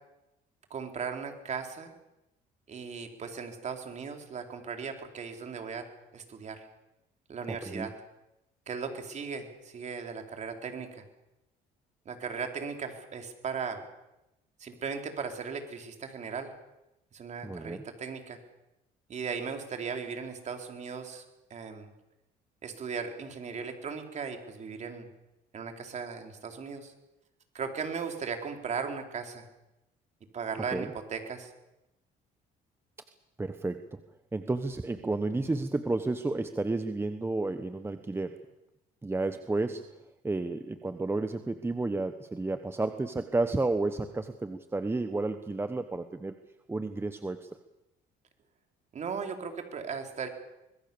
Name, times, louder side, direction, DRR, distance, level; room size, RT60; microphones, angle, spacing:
voice 1, 0.7-1.9 2.7-5.8 6.1-6.6 7.3-7.9 8.7-11.0 12.1-13.8 14.6-16.5 17.1-18.4 19.1-21.2 21.5-21.9 22.6-25.1 25.5-26.9 27.5-29.4 30.3-31.5 48.9-50.3, right 6 dB, 45° right, 5 dB, 4.1 m, -37 dB
voice 2, 7.5-7.9 17.4-17.8 30.7-30.9 33.4-33.8 34.3-38.4 39.0-39.8 40.2-46.3 46.7-47.4, right 2 dB, 15° right, 9 dB, 1.3 m, -31 dB
25.0 x 21.0 x 7.1 m, 0.92 s
cardioid pair, 110°, 17 cm